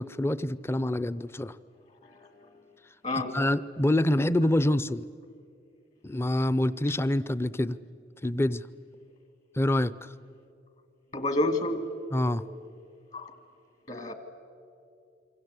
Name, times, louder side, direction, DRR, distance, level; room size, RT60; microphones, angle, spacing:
voice 1, 0.0-1.6 3.3-5.1 6.0-7.8 8.2-8.7 9.6-9.9 12.1-12.4, left 1 dB, 15° left, 17 dB, 0.5 m, -26 dB
voice 2, 2.0-2.5 3.0-3.5 11.1-11.9 13.1-13.3 13.9-14.1, left 1 dB, 45° left, 9 dB, 2.0 m, -30 dB
27.5 x 24.5 x 8.2 m, 2.5 s
head